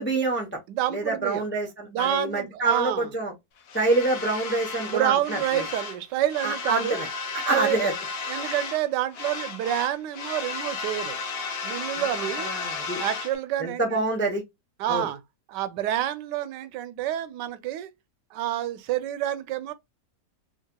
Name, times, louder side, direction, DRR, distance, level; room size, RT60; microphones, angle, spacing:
voice 1, 0.0-0.6 0.9-3.3 3.7-5.6 6.4-7.1 7.3-7.9 12.0-13.0 13.6-14.4 14.9-15.1, right 2 dB, 15° left, 0.3 m, -27 dB
voice 2, 0.7-1.4 1.9-3.1 4.8-7.0 7.5-7.8 8.3-11.2 11.6-12.5 13.0-14.0 14.8-15.2 15.5-17.9 18.3-19.7, right 12 dB, 85° right, 1.2 m, -28 dB
sound 1, 3.7-6.0 6.3-8.9 9.1-13.4, left 4 dB, 75° left, 0.5 m, -34 dB
3.1 x 2.8 x 2.2 m
omnidirectional pair, 1.8 m